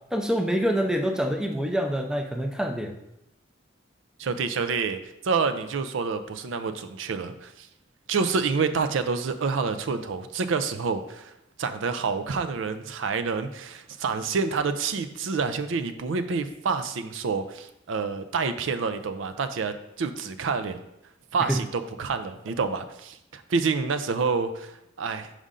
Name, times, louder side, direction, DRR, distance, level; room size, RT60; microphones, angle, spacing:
voice 1, 0.0-2.9 21.4-21.6, equal, 5° right, 4 dB, 0.4 m, -26 dB
voice 2, 4.2-5.0 5.2-7.7 8.1-11.3 11.6-20.8 21.3-25.3, right 5 dB, 80° right, 9 dB, 0.4 m, -28 dB
5.4 x 5.0 x 3.7 m, 0.83 s
head